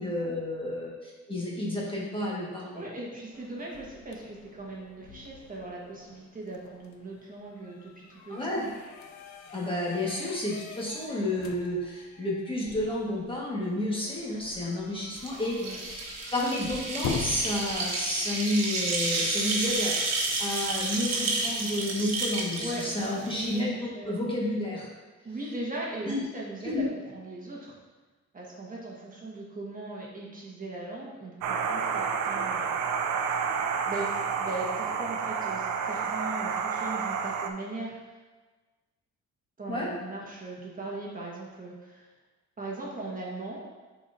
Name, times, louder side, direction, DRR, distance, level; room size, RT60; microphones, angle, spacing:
voice 1, 0.0-3.0 8.3-8.7 9.5-16.0 16.3-24.9 26.0-26.2 26.6-26.9 39.7-39.9, left 1 dB, 15° left, -5 dB, 1.6 m, -31 dB
voice 2, 2.7-8.4 15.6-15.8 22.6-22.9 23.3-23.6 23.9-24.1 25.2-27.7 28.3-32.7 33.3-33.4 33.9-38.2 39.6-42.1 42.6-43.7, right 2 dB, 30° right, -4 dB, 1.5 m, -39 dB
sound 1, 3.3-18.4, left 5 dB, 70° left, 0.6 m, -43 dB
sound 2, 15.2-23.6, right 2 dB, 60° right, 1.3 m, -31 dB
sound 3, 31.4-37.5, right 6 dB, 80° right, 0.6 m, -30 dB
8.1 x 4.3 x 2.7 m, 1.3 s
cardioid pair, 90°, 30 cm